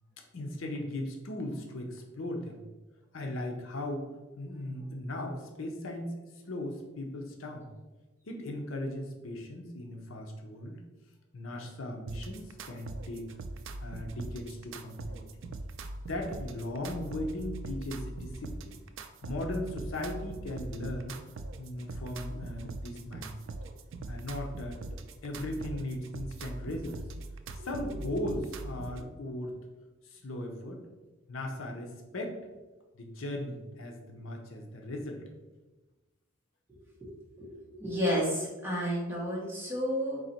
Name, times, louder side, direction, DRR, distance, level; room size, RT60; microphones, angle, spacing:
voice 1, 0.3-2.6 3.1-4.1 4.4-7.7 8.2-10.8 11.3-13.3 13.8-15.3 16.1-18.8 19.2-21.2 21.6-23.4 24.1-27.0 27.5-29.5 30.0-30.8 31.3-32.4 32.9-35.2, left 1 dB, 65° left, 2 dB, 0.6 m, -38 dB
sound 1, 12.1-29.1, right 2 dB, 60° right, 0.3 m, -41 dB
voice 2, 37.4-40.2, equal, 10° right, -5 dB, 1.1 m, -31 dB
4.0 x 2.9 x 4.2 m, 1.2 s
head